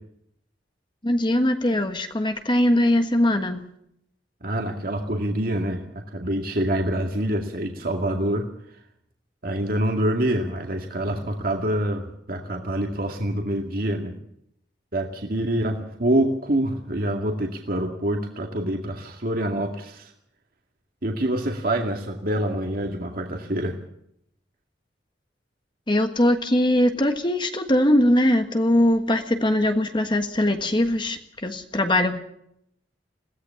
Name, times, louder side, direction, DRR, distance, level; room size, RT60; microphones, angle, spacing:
voice 1, 1.0-3.7 25.9-32.2, left 1 dB, 25° left, 6 dB, 1.5 m, -21 dB
voice 2, 4.4-5.8 6.1-8.5 9.4-14.1 14.9-20.1 21.0-23.8, right 1 dB, 55° right, 2 dB, 2.2 m, -26 dB
21.5 x 17.0 x 7.1 m, 0.74 s
head